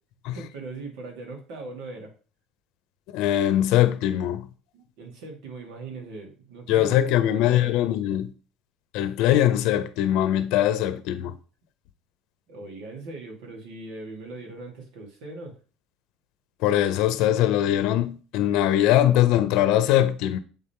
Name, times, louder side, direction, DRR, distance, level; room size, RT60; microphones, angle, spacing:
voice 1, 0.3-2.1 4.7-7.9 12.5-15.5, right 3 dB, 80° right, 2.5 m, -40 dB
voice 2, 3.1-4.5 6.7-8.3 8.9-11.3 16.6-20.4, left 12 dB, 70° left, 0.7 m, -21 dB
7.1 x 3.6 x 4.5 m
cardioid pair, 145°, 0 cm